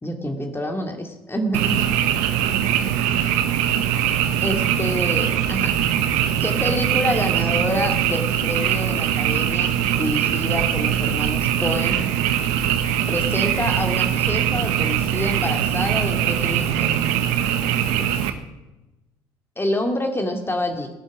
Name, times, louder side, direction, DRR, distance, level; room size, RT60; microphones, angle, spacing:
voice 1, 0.0-1.9 4.4-5.7 6.4-12.0 13.1-17.0 18.0-18.4 19.6-20.9, left 1 dB, 20° left, 4 dB, 2.4 m, -27 dB
Frog, 1.5-18.3, right 10 dB, 70° right, 1.1 m, -22 dB
18.0 x 11.0 x 6.1 m, 1.0 s
figure-of-eight pair, 50°, 13 cm